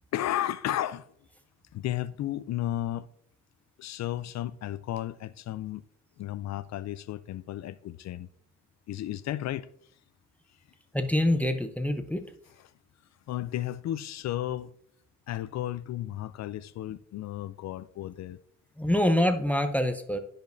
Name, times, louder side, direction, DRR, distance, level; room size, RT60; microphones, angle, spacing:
voice 1, 0.1-1.1 1.7-3.1 3.8-5.8 6.2-8.3 8.9-9.7 12.6-12.7 13.3-14.7 15.3-18.4, left 13 dB, 60° left, 0.4 m, -33 dB
voice 2, 10.9-12.2 18.8-20.2, left 1 dB, 5° left, 0.7 m, -25 dB
13.0 x 5.2 x 2.6 m
cardioid pair, 90°, 30 cm